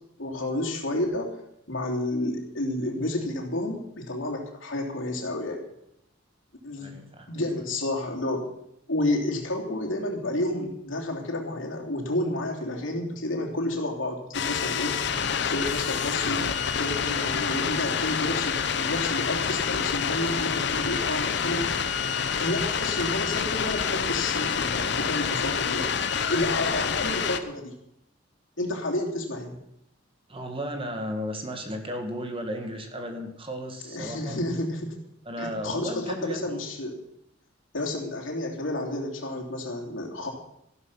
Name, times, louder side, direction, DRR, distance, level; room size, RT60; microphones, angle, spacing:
voice 1, 0.2-1.4 1.7-5.6 6.6-7.0 7.3-8.4 8.9-15.0 15.5-21.7 22.4-27.7 28.6-29.6 33.9-34.9 35.4-37.0 37.7-40.3, left 1 dB, 80° left, 0 dB, 3.2 m, -30 dB
voice 2, 6.8-7.3 30.3-34.4 35.3-36.6, equal, 30° right, 4 dB, 1.9 m, -34 dB
sound 1, 14.3-27.4, left 6 dB, 60° left, 0.9 m, -27 dB
14.5 x 12.5 x 5.7 m, 0.79 s
head